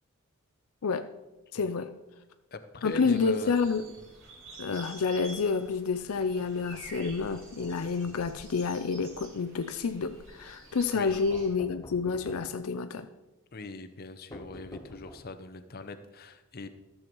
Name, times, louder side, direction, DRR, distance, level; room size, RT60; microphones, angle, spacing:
voice 1, 1.5-1.9 2.8-3.8 4.6-13.1, left 5 dB, 75° left, 10 dB, 0.5 m, -29 dB
voice 2, 2.5-3.5 10.9-11.2 13.5-16.7, left 3 dB, 45° left, 9 dB, 0.7 m, -41 dB
sound 1, 2.8-11.5, right 2 dB, 60° right, 2.7 m, -49 dB
sound 2, 7.3-8.3 11.3-12.6 14.3-15.5, left 1 dB, 15° left, 0.8 m, -48 dB
13.5 x 6.9 x 4.6 m, 1.0 s
head